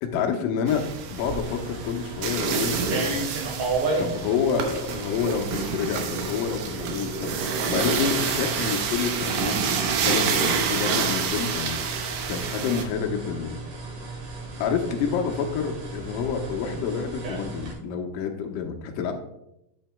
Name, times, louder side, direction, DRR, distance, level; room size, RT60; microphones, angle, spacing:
voice 1, 0.0-3.3 4.0-11.8 12.3-13.6 14.6-19.1, left 6 dB, 75° left, 3 dB, 2.1 m, -28 dB
sound 1, 0.7-12.8, right 6 dB, 85° right, 1.8 m, -28 dB
sound 2, 1.2-17.7, right 3 dB, 60° right, 2.8 m, -35 dB
10.5 x 8.4 x 2.2 m, 0.83 s
omnidirectional pair, 4.9 m